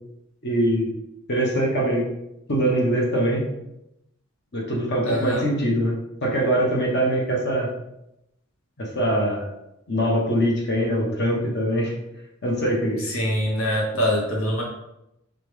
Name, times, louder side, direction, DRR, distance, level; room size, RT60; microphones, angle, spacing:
voice 1, 0.4-0.9 1.3-2.1 2.5-3.4 4.5-5.9 6.2-7.7 8.8-9.5 9.9-11.9 12.4-13.0, right 1 dB, 55° left, -2 dB, 1.1 m, -22 dB
voice 2, 5.0-5.4 13.0-14.6, equal, 85° left, -2 dB, 0.9 m, -24 dB
3.7 x 3.3 x 3.4 m, 0.84 s
head